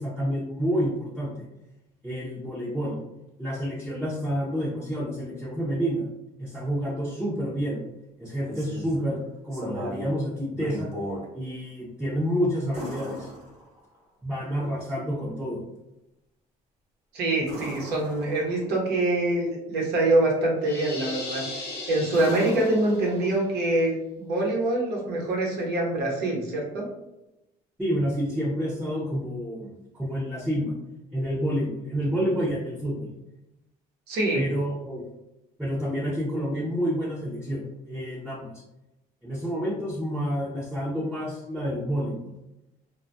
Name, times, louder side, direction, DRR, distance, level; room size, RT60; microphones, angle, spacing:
voice 1, 0.0-1.4 2.0-2.9 3.4-6.1 6.4-7.8 8.2-10.9 11.3-13.3 14.2-15.6 27.8-30.7 31.1-33.1 34.3-35.0 35.6-38.5 39.2-42.2, equal, 5° right, -7 dB, 0.6 m, -29 dB
sound 1, 8.2-9.0 9.5-10.1 10.5-11.3 12.7-14.0 17.4-18.7 21.2-21.6 22.1-23.5 25.6-25.7, right 1 dB, 35° right, 1.0 m, -38 dB
voice 2, 17.1-21.4 21.9-26.9 34.1-34.5, right 2 dB, 75° right, -2 dB, 0.9 m, -25 dB
sound 2, 20.6-23.2, left 2 dB, 65° left, 0.7 m, -37 dB
2.3 x 2.1 x 2.5 m, 0.93 s
cardioid pair, 110°, 17 cm